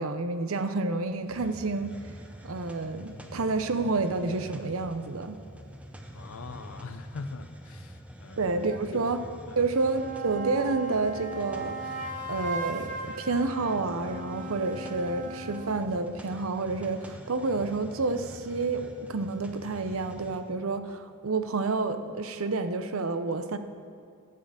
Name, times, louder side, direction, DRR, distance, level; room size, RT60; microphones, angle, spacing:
voice 1, 0.0-1.9 2.4-5.4 8.4-9.2 9.6-11.8 12.3-23.6, right 3 dB, 75° right, 10 dB, 0.7 m, -29 dB
Hiss, 1.2-20.5, equal, 5° right, 0.7 m, -46 dB
voice 2, 6.1-8.5 8.9-9.1 9.5-9.7, left 3 dB, 70° left, 11 dB, 0.6 m, -42 dB
sound 1, 9.7-15.9, right 3 dB, 35° right, 0.9 m, -37 dB
12.0 x 6.6 x 7.4 m, 2.4 s
head